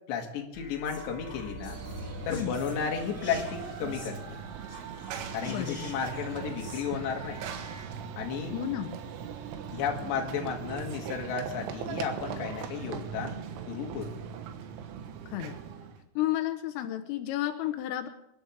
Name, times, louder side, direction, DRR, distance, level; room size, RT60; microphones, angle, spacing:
voice 1, 0.1-1.8 2.3-4.2 5.3-7.4 8.2-8.6 9.7-14.2, left 6 dB, 65° left, 1 dB, 3.9 m, -33 dB
sound 1, 0.5-7.8, equal, 15° left, 2.0 m, -46 dB
Run / Train, 1.6-16.0, right 8 dB, 80° right, 3.8 m, -40 dB
sound 2, 1.8-16.0, left 1 dB, 35° left, 1.4 m, -49 dB
voice 2, 5.4-5.9 8.5-9.0 15.3-15.6 16.2-18.1, left 13 dB, 85° left, 6 dB, 3.6 m, -32 dB
28.0 x 12.0 x 3.6 m, 0.83 s
omnidirectional pair, 5.7 m